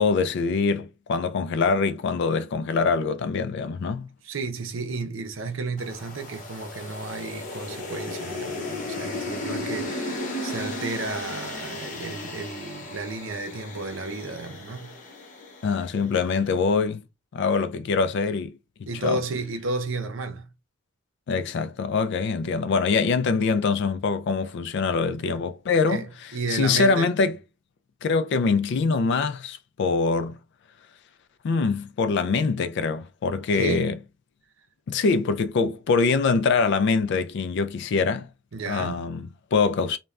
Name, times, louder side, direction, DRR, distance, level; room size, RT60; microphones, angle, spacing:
voice 1, 0.0-4.1 15.6-17.0 17.3-18.6 19.0-19.2 21.3-26.0 26.5-27.3 28.0-30.4 31.4-33.9 34.9-38.3 38.7-40.0, left 4 dB, 60° left, 0.3 m, -24 dB
voice 2, 4.2-15.0 18.9-20.5 25.7-27.1 33.5-33.9 38.5-39.1, right 3 dB, 70° right, 0.6 m, -32 dB
sound 1, 5.8-16.1, left 2 dB, 40° left, 0.8 m, -35 dB
3.1 x 2.2 x 2.4 m
head